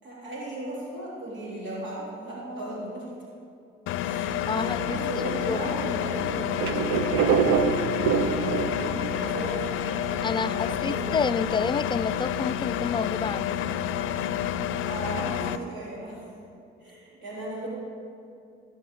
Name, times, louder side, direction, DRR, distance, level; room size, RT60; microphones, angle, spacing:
voice 1, 0.0-3.1 4.0-9.9 10.3-11.0 14.8-16.2 16.8-17.7, right 1 dB, 70° right, -6 dB, 3.8 m, -36 dB
Engine, 3.9-15.6, left 9 dB, 85° left, 0.5 m, -29 dB
voice 2, 4.5-5.2 5.5-5.7 10.2-13.6, left 5 dB, 25° left, 13 dB, 0.4 m, -29 dB
sound 1, 6.6-11.6, right 6 dB, 85° right, 0.7 m, -26 dB
17.0 x 5.8 x 8.4 m, 2.5 s
cardioid pair, 90°, 20 cm